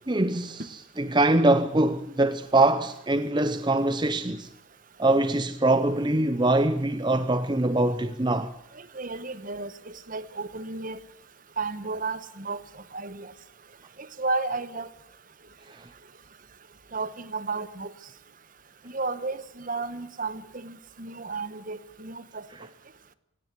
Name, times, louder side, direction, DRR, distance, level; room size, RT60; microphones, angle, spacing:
voice 1, 0.1-4.5 5.0-8.5 15.7-15.9, right 2 dB, 20° right, 0.7 m, -23 dB
voice 2, 8.9-11.0 11.6-12.6 12.9-13.3 14.2-14.9 16.9-17.9 18.9-22.4, right 3 dB, 40° right, 1.1 m, -33 dB
17.5 x 17.5 x 9.6 m
head